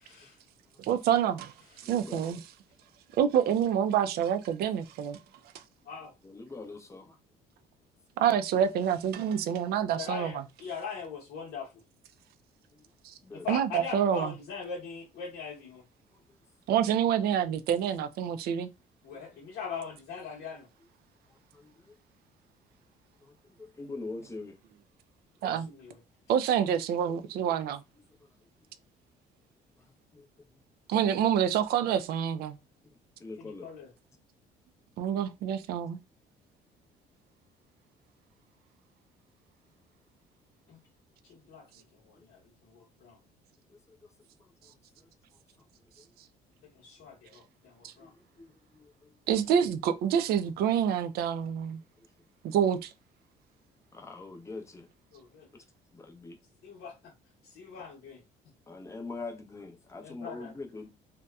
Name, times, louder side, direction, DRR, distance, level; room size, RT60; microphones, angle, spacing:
voice 1, 0.0-0.4 5.8-6.1 9.9-11.7 13.4-15.8 19.0-20.7 25.5-26.0 33.4-33.9 40.7-40.8 41.3-41.7 41.9-43.2 46.8-48.1 55.1-55.5 56.6-56.9 57.5-58.2 60.0-60.5, left 6 dB, 65° left, 0.8 m, -41 dB
voice 2, 0.8-1.5 1.8-2.4 3.2-5.2 8.2-10.4 13.5-14.3 16.7-18.7 25.4-25.7 26.3-27.8 30.9-32.6 35.0-36.0 47.8-47.9 49.3-51.8 52.4-52.9, right 9 dB, 70° right, 0.4 m, -27 dB
voice 3, 1.8-2.3 6.2-7.2 12.7-12.9 13.2-13.5 16.1-16.2 19.1-19.4 21.3-22.0 23.2-24.6 25.4-25.5 29.8-30.5 32.8-33.7 42.1-42.2 43.7-44.1 44.4-45.1 46.0-46.1 48.0-49.1 52.0-52.1 53.9-54.9 55.9-56.4 57.7-57.8 58.7-60.9, left 3 dB, 15° left, 0.6 m, -44 dB
2.7 x 2.1 x 2.2 m
cardioid pair, 110°, 17 cm